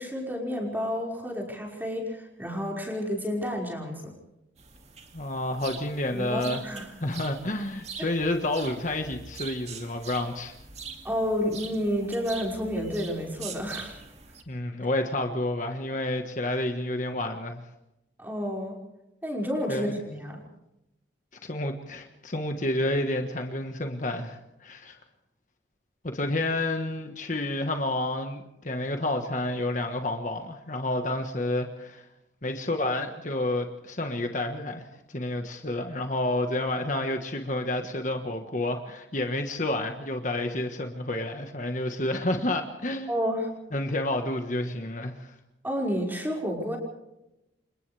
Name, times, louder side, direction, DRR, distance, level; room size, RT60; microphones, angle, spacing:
voice 1, 0.0-4.1 6.1-6.9 8.0-8.1 11.0-14.0 18.2-18.8 19.2-20.4 43.1-43.5 45.6-46.8, equal, 10° right, -1 dB, 5.4 m, -30 dB
sound 1, 4.6-14.4, right 5 dB, 35° right, 2.4 m, -43 dB
voice 2, 5.1-6.6 7.0-10.5 14.5-17.6 19.7-20.0 21.4-25.0 26.0-32.1 32.4-43.1 43.7-45.3, left 1 dB, 40° left, 5 dB, 1.4 m, -30 dB
29.0 x 26.5 x 3.4 m, 0.90 s
head